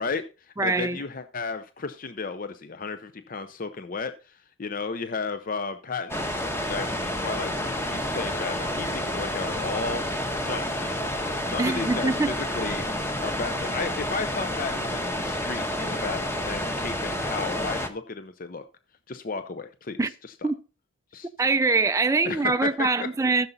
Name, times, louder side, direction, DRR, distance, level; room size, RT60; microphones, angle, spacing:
voice 1, 0.0-11.2 11.5-18.6 19.1-20.3 21.1-21.3 22.2-22.9, left 4 dB, 40° left, 0.6 m, -34 dB
voice 2, 0.6-1.0 11.6-12.3 20.0-20.1 20.4-20.6 21.4-23.5, right 3 dB, 15° right, 0.4 m, -23 dB
sound 1, 6.1-17.9, left 1 dB, 10° left, 1.1 m, -29 dB
14.5 x 6.9 x 4.0 m
head